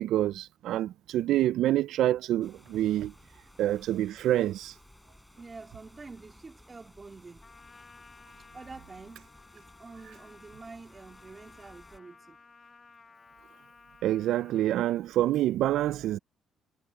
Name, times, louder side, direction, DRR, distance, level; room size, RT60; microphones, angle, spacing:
voice 1, 0.0-3.1 3.6-4.7 14.0-16.2, right 13 dB, 75° right, 0.4 m, -27 dB
sound 1, 2.4-12.0, left 1 dB, 5° left, 7.1 m, -57 dB
voice 2, 5.4-7.5 8.4-12.4, right 4 dB, 25° right, 3.6 m, -48 dB
Trumpet, 7.4-14.7, left 4 dB, 30° left, 2.1 m, -56 dB
cardioid pair, 100°, 0 cm